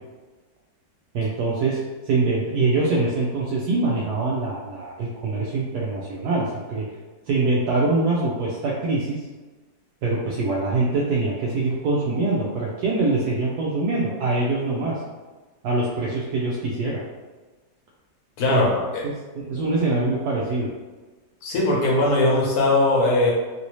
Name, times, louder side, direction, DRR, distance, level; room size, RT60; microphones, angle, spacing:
voice 1, 1.1-6.9 7.3-9.2 10.0-15.0 15.6-17.0 18.5-18.7 19.3-20.7, right 3 dB, 75° right, -5 dB, 1.0 m, -24 dB
voice 2, 18.4-18.8 21.4-23.3, left 2 dB, 65° left, -3 dB, 1.2 m, -19 dB
3.1 x 2.6 x 3.0 m, 1.3 s
omnidirectional pair, 1.9 m